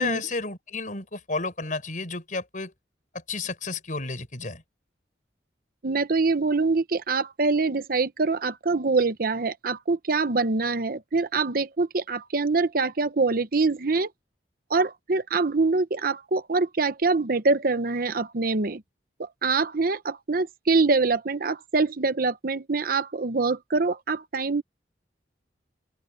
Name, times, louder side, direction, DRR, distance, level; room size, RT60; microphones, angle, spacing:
voice 1, 0.0-2.7 3.3-4.6, left 3 dB, 50° left, 5.2 m, -31 dB
voice 2, 5.8-14.1 14.7-18.8 19.2-24.6, right 3 dB, 55° right, 0.9 m, -24 dB
open air
head